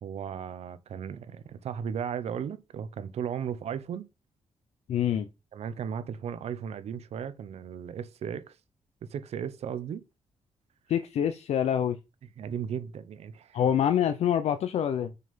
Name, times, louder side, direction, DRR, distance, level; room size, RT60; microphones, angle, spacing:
voice 1, 0.0-4.1 5.5-8.6 9.0-10.0 12.4-13.6, right 8 dB, 75° right, 1.0 m, -36 dB
voice 2, 4.9-5.3 10.9-12.0 13.5-15.1, left 9 dB, 80° left, 0.8 m, -26 dB
6.1 x 5.5 x 5.6 m
cardioid pair, 125°, 11 cm